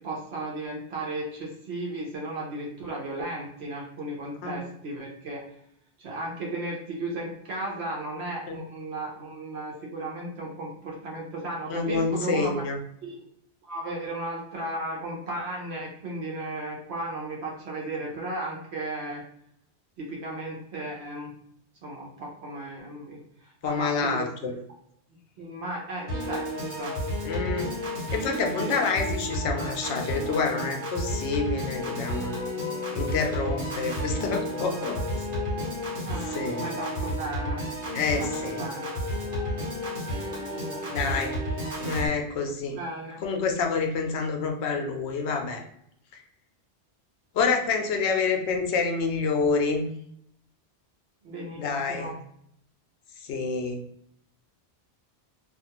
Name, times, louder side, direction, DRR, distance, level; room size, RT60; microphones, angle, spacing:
voice 1, 0.0-5.4 6.0-12.5 13.0-13.2 13.6-19.2 20.0-21.3 21.8-24.3 25.4-26.5 26.8-27.0 28.6-28.8 36.0-36.3 36.6-37.6 38.2-38.9 42.8-43.2 51.2-52.1, right 2 dB, 70° right, -3 dB, 1.0 m, -35 dB
voice 2, 11.7-12.8 23.6-24.5 27.2-27.7 28.1-32.4 32.9-35.0 36.2-36.8 37.9-38.6 40.9-41.4 41.8-42.8 43.2-45.6 46.1-46.2 47.3-49.9 51.5-52.1 53.3-53.8, left 4 dB, 80° left, 4 dB, 0.8 m, -28 dB
Piano / Organ, 26.1-42.1, equal, 50° right, 1.1 m, -31 dB
2.5 x 2.4 x 2.8 m, 0.70 s
omnidirectional pair, 1.1 m